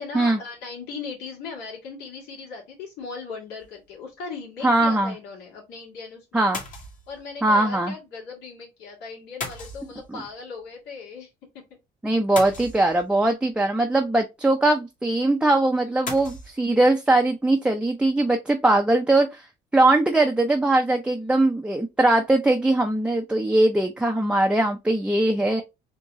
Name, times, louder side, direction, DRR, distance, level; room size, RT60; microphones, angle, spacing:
voice 1, 0.0-6.4 7.1-11.3 15.8-16.3 21.2-21.4, left 4 dB, 90° left, 2.3 m, -38 dB
sound 1, 3.6-3.9 6.5-7.2 9.4-10.3 12.4-13.3 16.1-16.5, left 3 dB, 50° left, 1.5 m, -36 dB
voice 2, 4.6-5.1 6.3-6.6 7.4-7.9 12.0-19.5 19.7-25.6, right 2 dB, 5° right, 0.5 m, -21 dB
4.0 x 2.9 x 3.6 m
cardioid pair, 110°, 17 cm